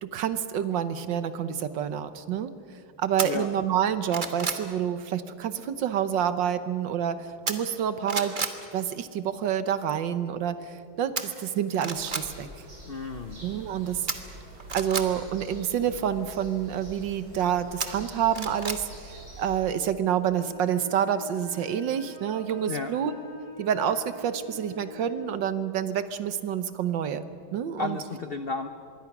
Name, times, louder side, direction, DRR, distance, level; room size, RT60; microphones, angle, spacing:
voice 1, 0.0-2.5 3.0-7.2 7.5-8.3 8.7-12.5 13.4-14.0 14.7-18.9 19.4-23.1 23.6-27.2 27.5-28.0, right 9 dB, 65° right, 12 dB, 1.6 m, -28 dB
sound 1, 3.2-3.3 3.8-4.7 7.5-7.8 8.1-8.6 11.2-11.3 11.7-12.3 14.1-15.1 17.8-18.8 19.2-19.3, right 4 dB, 30° right, 1.1 m, -31 dB
sound 2, 11.9-19.5, right 1 dB, 85° right, 6.4 m, -46 dB
voice 2, 12.9-13.4 22.7-23.0 27.8-28.7, left 4 dB, 80° left, 8 dB, 0.5 m, -33 dB
sound 3, 20.3-25.2, left 2 dB, 50° right, 5.8 m, -45 dB
25.5 x 22.0 x 6.1 m, 2.5 s
omnidirectional pair, 2.2 m